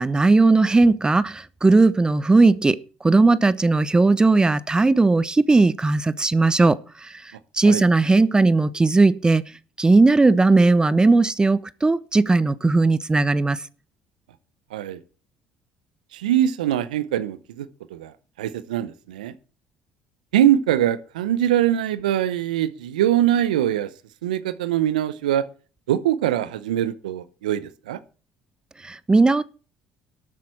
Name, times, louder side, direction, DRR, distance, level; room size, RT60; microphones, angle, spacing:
voice 1, 0.0-9.4 9.8-13.6 28.8-29.4, right 3 dB, 20° right, 0.7 m, -18 dB
voice 2, 16.1-17.7 17.9-18.1 18.4-19.3 20.3-23.9 24.2-25.5 25.9-28.0, right 11 dB, 85° right, 0.7 m, -22 dB
12.5 x 8.3 x 4.6 m
hypercardioid pair, 60°, 4 cm